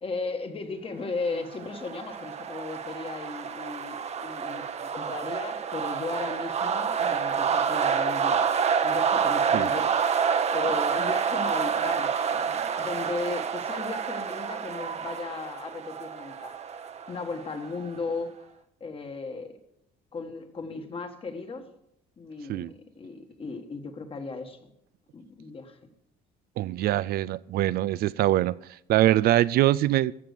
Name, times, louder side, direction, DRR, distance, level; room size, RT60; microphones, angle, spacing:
voice 1, 0.0-8.5 8.8-10.0 10.5-16.5 17.1-18.3 18.8-19.6 20.1-21.7 22.2-24.6 25.1-25.8, left 4 dB, 35° left, 1.5 m, -36 dB
sound 1, 1.3-18.0, right 6 dB, 40° right, 0.9 m, -28 dB
voice 2, 26.6-28.6 28.9-30.1, right 14 dB, 65° right, 0.4 m, -23 dB
14.5 x 6.0 x 6.7 m
cardioid pair, 110°, 17 cm